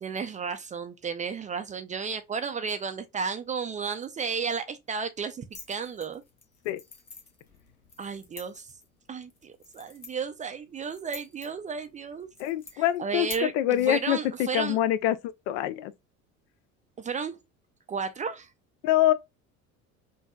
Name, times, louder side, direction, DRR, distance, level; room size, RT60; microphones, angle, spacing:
voice 1, 0.0-6.2 8.0-8.7 9.1-12.3 12.7-14.8 17.0-17.4 17.9-18.5, right 5 dB, 20° right, 0.4 m, -33 dB
sound 1, 5.5-13.4, left 4 dB, 90° left, 1.0 m, -48 dB
voice 2, 12.4-15.2 15.5-15.9 18.8-19.1, left 13 dB, 55° left, 0.5 m, -25 dB
5.5 x 2.6 x 2.2 m
figure-of-eight pair, 65°, 43 cm